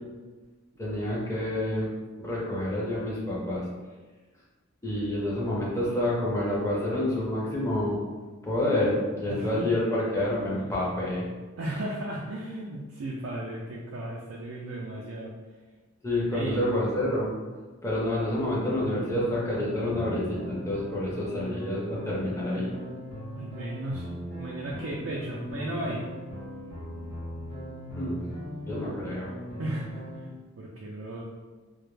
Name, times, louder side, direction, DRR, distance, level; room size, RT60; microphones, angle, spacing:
voice 1, 0.8-1.9 2.2-3.6 4.8-8.0 8.4-11.2 16.0-17.3 17.8-22.7 28.0-28.1 28.6-29.3, left 1 dB, 15° left, -6 dB, 0.5 m, -28 dB
voice 2, 9.3-9.7 10.5-10.7 11.6-15.3 16.3-16.6 23.3-24.1 24.3-26.1 29.6-31.2, right 1 dB, 65° right, -3 dB, 0.4 m, -35 dB
sound 1, 18.8-30.3, equal, 60° left, 1.0 m, -39 dB
2.2 x 2.0 x 3.0 m, 1.3 s
head